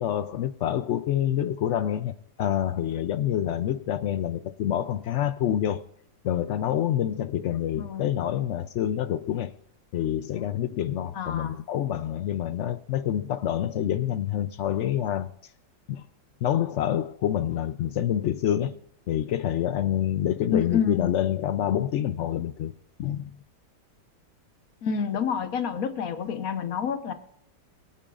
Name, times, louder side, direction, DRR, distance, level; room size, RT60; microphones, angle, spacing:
voice 1, 0.0-2.1 2.4-5.8 6.2-9.5 9.9-15.5 15.9-16.0 16.4-22.7 23.0-23.4, left 11 dB, 90° left, 0.6 m, -27 dB
voice 2, 7.8-8.1 11.1-11.6 20.5-21.1 24.8-27.1, left 7 dB, 60° left, 1.4 m, -28 dB
23.5 x 8.9 x 2.4 m
omnidirectional pair, 1.8 m